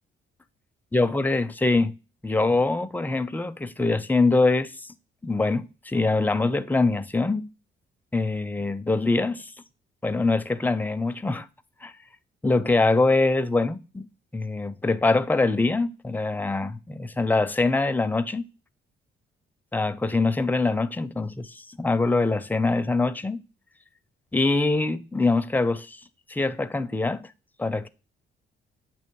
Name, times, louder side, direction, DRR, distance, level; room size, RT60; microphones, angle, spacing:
voice 1, 0.9-1.9 2.2-4.9 5.2-7.5 8.1-9.5 10.0-11.5 11.8-11.9 12.4-14.1 14.3-18.5 19.7-23.4 24.3-26.0 26.3-27.3 27.6-27.9, left 3 dB, 10° left, 0.5 m, -24 dB
7.9 x 3.1 x 4.5 m
cardioid pair, 90°, 20 cm